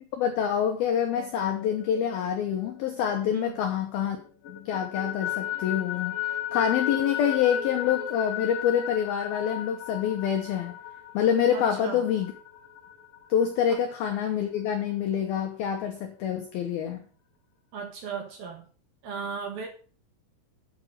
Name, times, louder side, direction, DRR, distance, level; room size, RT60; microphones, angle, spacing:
voice 1, 0.2-4.2 4.5-6.2 6.5-10.8 11.1-12.3 13.3-17.0, left 8 dB, 85° left, 4 dB, 2.1 m, -26 dB
sound 1, 1.0-3.8 4.2-13.6, left 10 dB, 65° left, 2.3 m, -35 dB
voice 2, 11.5-12.1 17.7-18.7 19.0-19.7, right 5 dB, 65° right, 4 dB, 2.6 m, -36 dB
8.8 x 7.3 x 6.5 m, 0.41 s
omnidirectional pair, 5.9 m